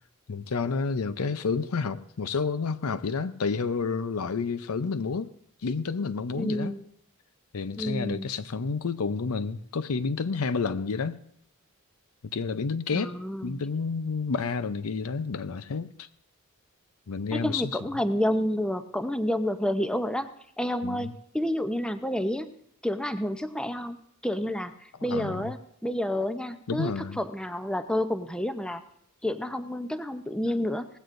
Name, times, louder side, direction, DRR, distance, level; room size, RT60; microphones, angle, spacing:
voice 1, 0.3-5.3 5.6-6.7 7.5-11.2 12.3-13.1 13.4-16.1 17.1-17.7 20.8-21.1 25.0-25.5 26.7-27.2, left 4 dB, 85° left, 0.6 m, -30 dB
voice 2, 6.3-6.8 7.8-8.3 12.9-13.6 17.3-20.3 20.6-22.5 22.8-24.7 25.0-28.8 29.2-30.9, left 1 dB, 5° left, 0.6 m, -29 dB
18.5 x 15.5 x 2.6 m
head